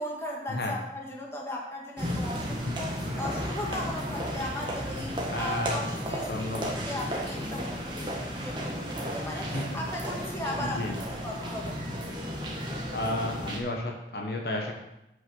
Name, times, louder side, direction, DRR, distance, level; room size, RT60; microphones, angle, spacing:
voice 1, 0.0-6.3 6.6-11.8, left 1 dB, 15° left, -2 dB, 1.6 m, -37 dB
sound 1, 2.0-13.6, equal, 25° right, 1.5 m, -34 dB
voice 2, 5.3-5.8 6.3-6.8 9.5-9.6 10.6-11.0 12.9-14.7, left 1 dB, 60° left, 1 dB, 1.2 m, -32 dB
7.9 x 5.6 x 6.3 m, 0.90 s
head